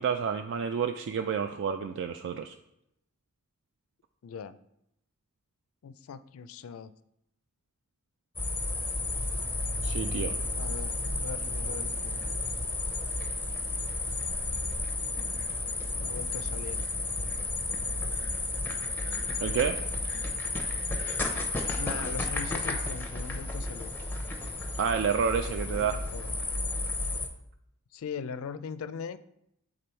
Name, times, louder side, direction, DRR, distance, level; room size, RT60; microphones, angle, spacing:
voice 1, 0.0-2.5 9.8-10.3 19.4-19.8 24.8-26.0, right 6 dB, 55° right, 7 dB, 0.3 m, -29 dB
voice 2, 4.2-4.6 5.8-6.9 10.6-12.3 16.0-16.8 21.8-23.9 25.6-26.4 27.9-29.2, left 6 dB, 65° left, 14 dB, 0.4 m, -40 dB
sound 1, 8.4-27.3, left 2 dB, 10° left, 0.7 m, -32 dB
6.8 x 3.9 x 4.3 m, 0.78 s
head